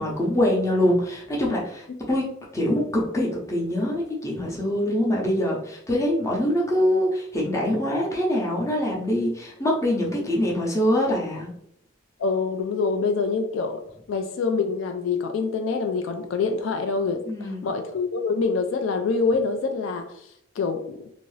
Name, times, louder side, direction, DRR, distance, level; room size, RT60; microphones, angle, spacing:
voice 1, 0.0-2.2 2.5-11.5 17.3-17.7, left 1 dB, 15° left, -3 dB, 0.6 m, -24 dB
voice 2, 12.2-13.8 14.1-20.2 20.6-21.0, left 4 dB, 65° left, 6 dB, 0.3 m, -25 dB
2.7 x 2.5 x 3.1 m, 0.70 s
head